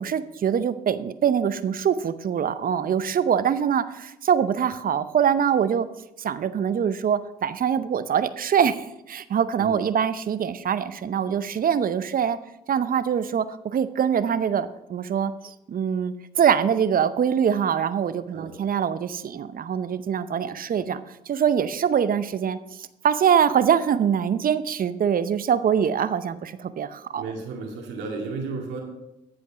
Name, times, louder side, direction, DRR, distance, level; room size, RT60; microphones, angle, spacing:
voice 1, 0.0-5.9 6.2-12.4 12.7-27.2, right 8 dB, 55° right, 13 dB, 0.7 m, -24 dB
voice 2, 27.1-28.8, right 4 dB, 80° right, 1 dB, 2.1 m, -33 dB
14.5 x 5.2 x 5.0 m, 0.88 s
hypercardioid pair, 50°, 18 cm